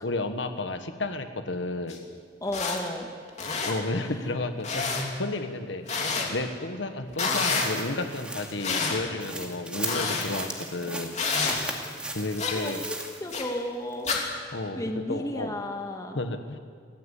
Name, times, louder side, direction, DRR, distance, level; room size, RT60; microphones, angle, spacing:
voice 1, 0.0-2.0 3.6-4.9 5.1-5.9 6.3-11.2 12.1-12.8 14.5-15.6 16.1-16.6, left 2 dB, 75° left, 7 dB, 1.4 m, -32 dB
sound 1, 1.9-2.0 2.5-2.8 3.3-3.7 4.6-5.0 5.9-6.3 7.1-7.7 8.6-9.0 9.8-10.3 11.1-11.6 12.4-12.6 13.3-13.4 14.0-14.2, left 4 dB, 35° left, 3.1 m, -28 dB
voice 2, 2.4-3.1 3.7-3.8 12.6-13.0 13.2-14.1 14.4-16.2, left 1 dB, 20° left, 3 dB, 1.8 m, -33 dB
sound 2, 7.2-13.5 13.9-14.0, right 1 dB, 5° right, 2.2 m, -38 dB
24.0 x 17.0 x 8.4 m, 2.1 s
head